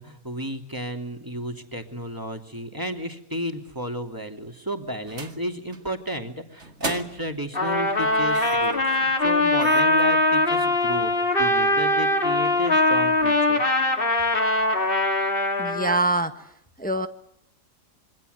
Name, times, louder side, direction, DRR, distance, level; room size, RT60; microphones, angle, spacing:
voice 1, 0.0-11.1 11.4-13.6, equal, 10° right, 4 dB, 2.9 m, -33 dB
sound 1, 5.1-5.4 5.7-6.0 6.6-7.4 8.3-8.8 9.3-9.4 9.6-10.0, right 3 dB, 45° right, 2.7 m, -35 dB
Trumpet, 7.5-16.0, left 2 dB, 35° left, 3.3 m, -21 dB
voice 2, 15.6-16.3 16.8-17.1, right 2 dB, 5° left, 7 dB, 1.4 m, -24 dB
27.0 x 24.5 x 8.2 m, 0.76 s
omnidirectional pair, 1.7 m